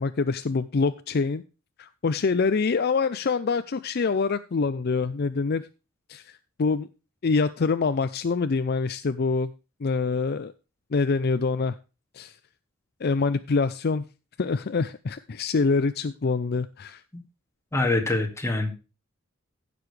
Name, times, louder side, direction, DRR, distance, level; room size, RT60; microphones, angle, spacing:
voice 1, 0.0-1.4 1.8-5.6 6.1-6.9 7.2-9.5 9.8-10.5 10.9-11.8 12.1-12.3 13.0-14.0 14.4-17.0, left 4 dB, 50° left, 12 dB, 0.5 m, -25 dB
voice 2, 17.7-18.7, left 2 dB, 15° left, 2 dB, 2.1 m, -24 dB
15.5 x 6.8 x 3.3 m, 0.32 s
head